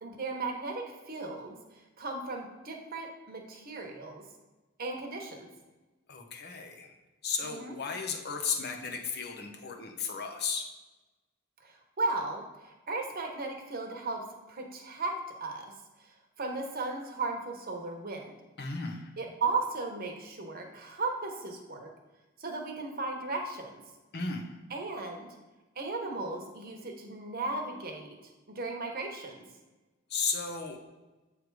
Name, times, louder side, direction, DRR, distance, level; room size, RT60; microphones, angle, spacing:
voice 1, 0.0-1.6 2.0-4.2 4.8-5.5 7.4-7.7 11.6-15.1 15.4-15.7 16.0-16.1 16.4-18.3 19.2-21.9 22.4-23.8 24.7-25.3 25.8-29.4, right 3 dB, 45° right, 2 dB, 1.0 m, -36 dB
voice 2, 6.1-6.9 7.2-10.7 18.6-19.1 24.1-24.6 30.1-30.8, left 5 dB, 50° left, 4 dB, 0.9 m, -34 dB
7.8 x 3.4 x 4.7 m, 1.1 s
head